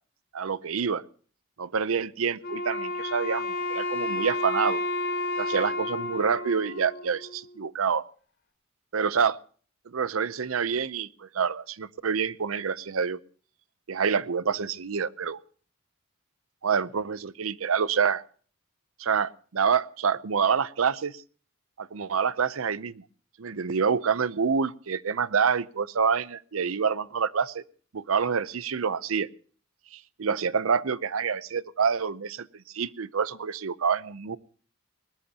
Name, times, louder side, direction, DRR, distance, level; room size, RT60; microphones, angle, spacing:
voice 1, 0.3-1.0 1.6-4.8 5.4-8.0 8.9-9.4 9.9-13.2 13.9-15.4 16.6-18.2 19.0-21.2 21.8-23.0 23.4-27.6 27.9-29.3 29.9-32.5 32.7-34.4, right 6 dB, 90° right, 17 dB, 0.6 m, -27 dB
Wind instrument woodwind instrument, 2.4-7.6, left 2 dB, 55° left, 4.5 m, -31 dB
20.5 x 19.0 x 2.9 m, 0.43 s
head